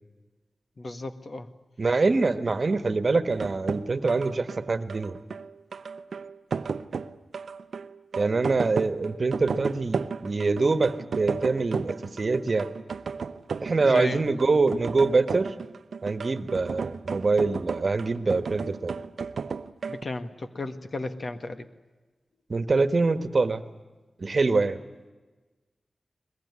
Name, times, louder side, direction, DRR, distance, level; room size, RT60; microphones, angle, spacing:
voice 1, 0.8-1.5 13.8-14.2 19.9-21.7, left 2 dB, 55° left, 8 dB, 1.7 m, -34 dB
voice 2, 1.8-5.2 8.2-12.7 13.6-15.5 16.0-19.0 22.5-23.6 24.2-24.8, right 3 dB, 55° right, 10 dB, 1.4 m, -24 dB
sound 1, 3.3-20.0, right 5 dB, 80° right, 0.7 m, -34 dB
21.5 x 21.5 x 9.7 m, 1.2 s
cardioid pair, 55°, 0 cm